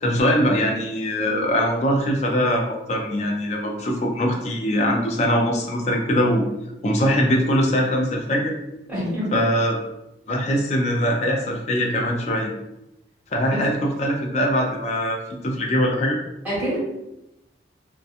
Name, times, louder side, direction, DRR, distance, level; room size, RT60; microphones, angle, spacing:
voice 1, 0.0-6.5 6.8-8.6 9.3-9.8 10.3-12.5 13.3-15.2 15.4-16.2, equal, 35° left, 0 dB, 0.4 m, -22 dB
voice 2, 8.9-9.3 13.5-13.6 16.4-16.8, equal, 5° right, -11 dB, 1.3 m, -27 dB
2.7 x 2.2 x 2.4 m, 0.91 s
head